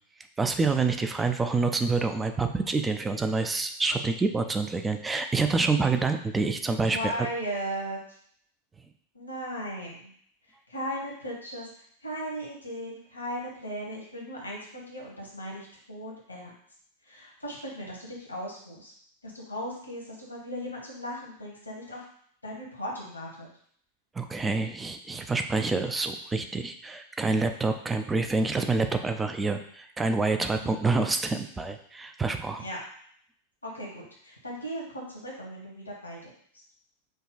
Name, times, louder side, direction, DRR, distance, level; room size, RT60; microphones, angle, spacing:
voice 1, 0.4-7.1 24.2-32.6, right 3 dB, 15° right, 7 dB, 0.4 m, -27 dB
voice 2, 6.9-8.2 9.1-10.1 10.4-16.5 17.0-18.9 19.2-22.0 22.4-23.5 30.6-30.9 32.6-32.8 33.6-36.6, equal, 80° left, -2 dB, 1.3 m, -37 dB
5.2 x 2.4 x 3.9 m, 0.63 s
figure-of-eight pair, 90°, 0 cm